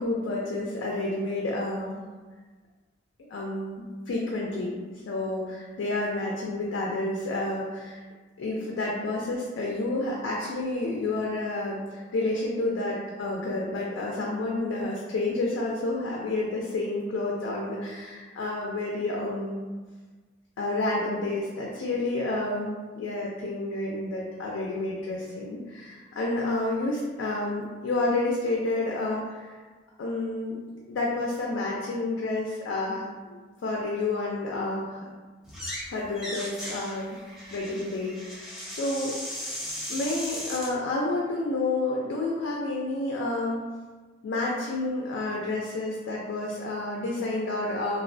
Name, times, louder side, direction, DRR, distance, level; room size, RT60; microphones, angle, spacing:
voice 1, 0.0-2.0 3.3-4.8 5.1-8.0 8.4-19.6 20.6-29.6 30.0-30.6 30.9-33.4 33.6-35.0 35.9-37.2 37.5-39.1 39.9-43.6 44.2-48.0, left 2 dB, 80° left, -3 dB, 0.4 m, -30 dB
sound 1, 35.4-35.9 36.1-40.7, left 1 dB, ahead, 0.5 m, -37 dB
2.4 x 2.0 x 2.5 m, 1.4 s
head